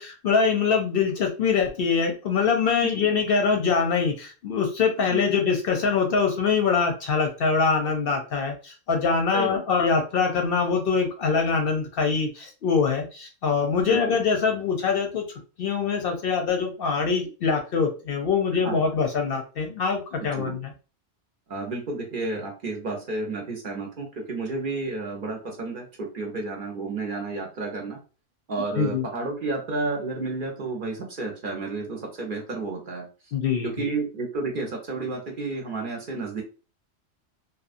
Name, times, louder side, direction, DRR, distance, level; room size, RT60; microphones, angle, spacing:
voice 1, 0.0-20.7 28.8-29.1 33.3-33.9, left 5 dB, 60° left, 3 dB, 0.7 m, -24 dB
voice 2, 13.8-14.2 18.6-18.8 20.2-20.6 21.5-28.0 28.5-33.1 33.6-36.4, right 3 dB, 55° right, 1 dB, 0.8 m, -31 dB
2.8 x 2.2 x 2.4 m, 0.34 s
omnidirectional pair, 1.2 m